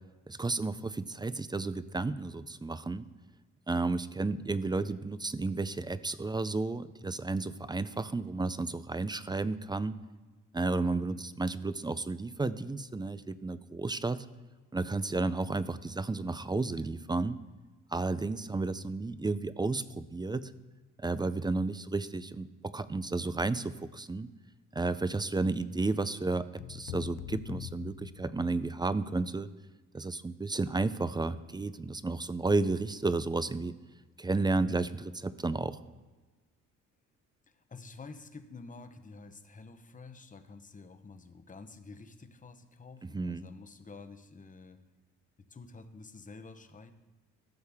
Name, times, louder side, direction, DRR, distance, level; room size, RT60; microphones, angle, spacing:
voice 1, 0.3-3.1 3.7-9.9 10.5-14.3 14.7-17.4 17.9-20.5 21.0-24.3 24.7-29.5 29.9-33.7 34.2-35.8 43.1-43.5, right 3 dB, 15° right, 14 dB, 0.4 m, -32 dB
sound 1, 26.6-28.9, left 14 dB, 80° left, 0.5 m, -43 dB
voice 2, 37.5-44.8 45.5-46.9, left 3 dB, 25° left, 9 dB, 0.9 m, -49 dB
14.5 x 6.4 x 3.6 m, 1.3 s
cardioid pair, 80°, 31 cm